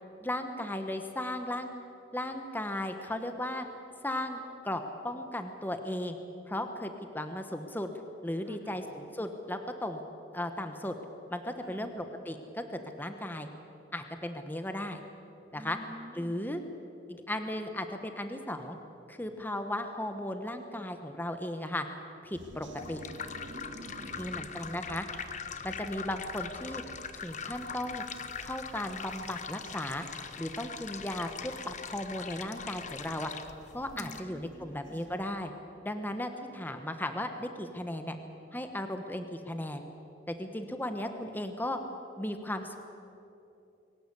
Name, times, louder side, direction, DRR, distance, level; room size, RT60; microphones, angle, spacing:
voice 1, 0.2-1.7 2.1-3.7 4.0-6.2 6.5-7.9 8.2-10.0 10.3-11.0 11.3-13.5 13.9-15.0 15.5-15.8 16.1-16.6 17.1-18.8 19.1-21.8 22.2-23.0 24.2-25.1 25.6-26.8 27.2-28.0 28.4-30.0 30.4-33.3 33.7-35.5 35.8-38.2 38.5-39.9 40.3-41.8 42.2-42.8, left 1 dB, 10° left, 6 dB, 1.1 m, -36 dB
voice 2, 8.4-8.8 11.6-11.9 15.5-16.4 23.5-24.4 33.9-35.0, equal, 15° right, 3 dB, 2.3 m, -49 dB
sound 1, 22.3-35.3, right 1 dB, 80° right, 2.0 m, -53 dB
sound 2, 22.5-34.2, left 6 dB, 40° left, 1.0 m, -42 dB
22.5 x 18.5 x 8.4 m, 2.8 s
head